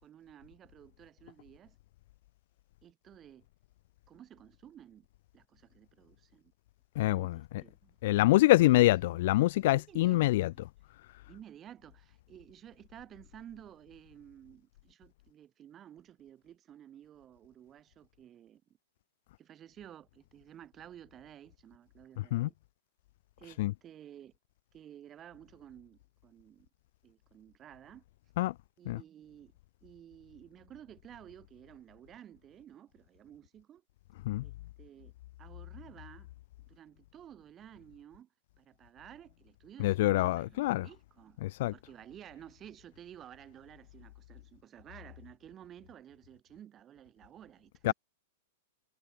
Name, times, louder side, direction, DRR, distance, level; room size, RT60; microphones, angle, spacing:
voice 1, 0.0-1.8 2.8-3.5 4.1-5.1 5.3-6.5 7.0-8.0 8.3-9.2 9.7-10.6 11.3-18.6 19.4-22.5 23.4-24.3 24.7-26.7 27.0-28.0 28.8-29.5 29.8-33.8 34.4-35.1 35.4-36.3 36.7-38.3 38.6-41.4 41.7-47.9, right 10 dB, 25° right, 6.3 m, -53 dB
voice 2, 7.0-7.3 8.0-10.5 22.3-22.5 23.6-23.7 28.4-28.5 28.9-29.0 34.3-34.4 39.8-40.9 41.4-41.7 47.8-47.9, left 17 dB, 60° left, 0.5 m, -25 dB
hypercardioid pair, 135°, 0 cm